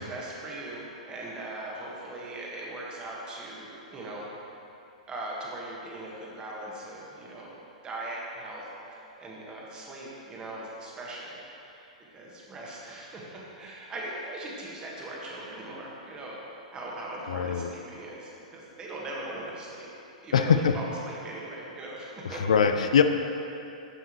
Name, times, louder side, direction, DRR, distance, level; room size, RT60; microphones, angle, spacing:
voice 1, 0.0-4.3 5.1-11.9 12.1-16.4 16.7-19.9 20.2-22.4, right 1 dB, 20° right, -4 dB, 1.6 m, -40 dB
voice 2, 17.3-17.7 20.3-20.8 22.2-23.0, left 7 dB, 65° left, 7 dB, 0.4 m, -22 dB
11.5 x 5.4 x 3.2 m, 2.8 s
figure-of-eight pair, 105°, 4 cm